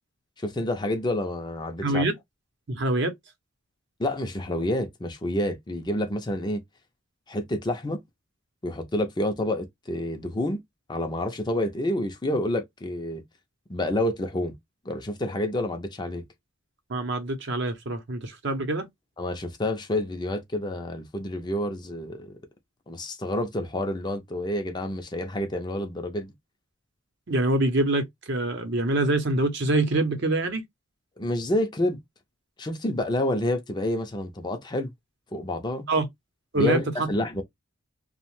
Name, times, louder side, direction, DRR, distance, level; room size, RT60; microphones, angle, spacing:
voice 1, 0.4-2.1 4.0-6.6 7.3-8.0 8.6-10.6 10.9-13.2 13.7-14.5 14.9-16.2 19.2-22.4 22.9-26.3 31.2-32.0 32.6-34.9 35.3-35.9 36.5-37.4, left 1 dB, 20° left, 0.5 m, -28 dB
voice 2, 1.8-2.1 2.7-3.1 16.9-18.9 27.3-30.6 35.9-36.0 36.5-36.8, right 2 dB, 55° right, 0.7 m, -25 dB
2.9 x 2.1 x 3.0 m
head